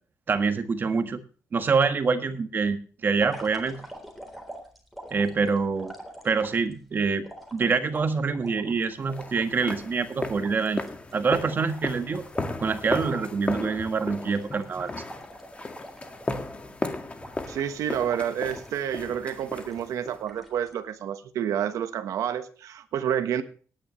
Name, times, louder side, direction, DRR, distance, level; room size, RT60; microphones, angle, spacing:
voice 1, 0.3-1.2 1.5-3.8 5.1-5.9 6.2-7.3 7.5-10.8 11.1-12.2 12.6-14.9, right 5 dB, 40° right, 8 dB, 1.6 m, -25 dB
sound 1, 3.1-6.7 7.2-9.8 10.1-10.2 10.4-13.4 13.6-13.9 14.2-16.7 17.2-17.7 18.1-18.8 19.3-19.9 20.3-20.8, right 1 dB, ahead, 3.8 m, -45 dB
sound 2, 9.1-20.2, left 3 dB, 25° left, 1.9 m, -35 dB
voice 2, 17.5-23.4, right 9 dB, 85° right, 9 dB, 1.3 m, -29 dB
19.0 x 10.0 x 3.2 m, 0.40 s
cardioid pair, 145°, 5 cm